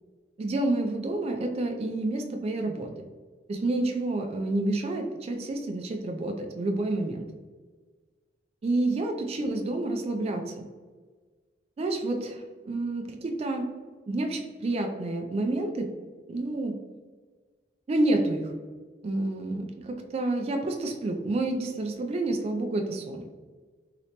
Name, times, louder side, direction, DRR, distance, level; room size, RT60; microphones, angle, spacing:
voice 1, 0.4-2.9 3.5-7.2 8.6-10.6 11.8-13.7 14.1-15.9 16.3-16.8 17.9-18.5 19.0-23.2, right 2 dB, 35° right, 4 dB, 0.3 m, -29 dB
3.1 x 2.9 x 2.8 m, 1.4 s
head